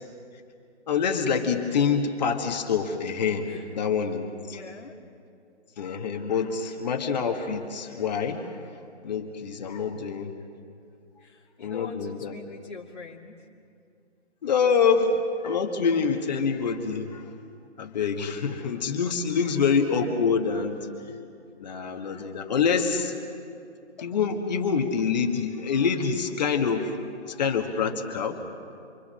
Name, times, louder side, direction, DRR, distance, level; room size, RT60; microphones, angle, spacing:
voice 1, 0.9-4.6 5.8-8.7 9.0-10.5 11.6-12.3 14.4-17.3 17.8-21.2 21.6-23.1 24.0-28.4, left 5 dB, 35° left, 3 dB, 1.6 m, -26 dB
voice 2, 4.5-5.0 11.2-13.5, left 4 dB, 65° left, -3 dB, 2.2 m, -44 dB
28.0 x 24.0 x 6.4 m, 2.5 s
figure-of-eight pair, 140°, 35 cm